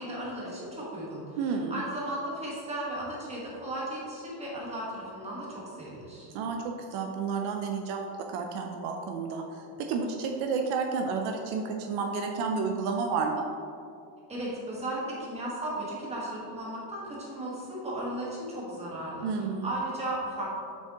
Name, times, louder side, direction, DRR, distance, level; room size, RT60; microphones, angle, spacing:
voice 1, 0.0-6.3 14.3-20.5, right 1 dB, 15° right, -5 dB, 1.3 m, -36 dB
voice 2, 1.4-1.8 6.3-9.4 9.8-13.4 19.2-19.7, right 5 dB, 50° right, 3 dB, 0.5 m, -31 dB
7.8 x 6.2 x 2.9 m, 2.5 s
cardioid pair, 175°, 49 cm